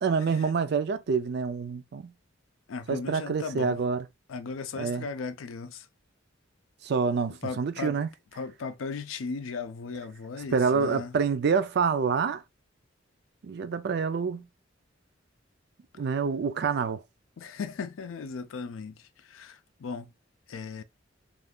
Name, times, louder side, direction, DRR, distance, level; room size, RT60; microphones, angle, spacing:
voice 1, 0.0-2.1 2.9-4.1 4.8-5.1 6.8-8.1 10.5-12.4 13.4-14.5 16.0-17.0, right 5 dB, 55° right, 0.4 m, -27 dB
voice 2, 2.7-3.8 4.3-5.9 7.3-8.0 8.3-11.1 17.4-20.1 20.5-20.8, left 4 dB, 90° left, 0.4 m, -37 dB
2.5 x 2.4 x 3.5 m
head